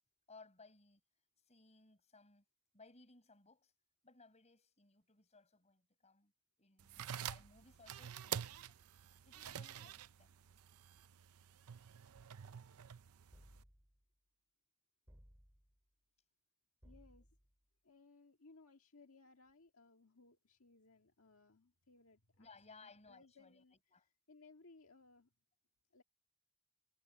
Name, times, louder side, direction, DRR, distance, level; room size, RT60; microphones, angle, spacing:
voice 1, 0.3-1.0 1.5-2.4 2.7-3.7 4.0-6.3 6.6-8.8 9.2-10.4 22.4-24.1, left 3 dB, 30° left, 6.0 m, -63 dB
sound 1, 6.8-13.6, right 9 dB, 75° right, 0.6 m, -48 dB
sound 2, 13.3-14.1 15.1-15.8 16.8-17.6, equal, 10° right, 5.1 m, -63 dB
voice 2, 16.8-17.3 17.8-25.3 25.9-26.0, left 3 dB, 70° left, 1.8 m, -64 dB
head